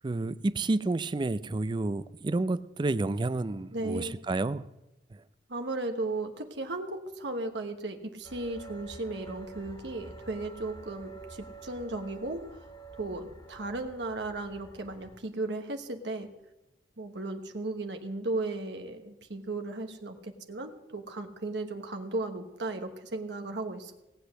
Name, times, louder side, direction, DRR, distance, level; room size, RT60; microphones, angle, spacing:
voice 1, 0.0-4.6, right 2 dB, 25° right, 16 dB, 0.4 m, -30 dB
voice 2, 3.7-4.2 5.5-12.4 13.0-16.3 17.0-23.9, right 2 dB, 70° right, 6 dB, 1.1 m, -35 dB
sound 1, 8.2-15.2, right 3 dB, 25° left, 1.2 m, -48 dB
17.5 x 8.2 x 6.4 m, 0.94 s
head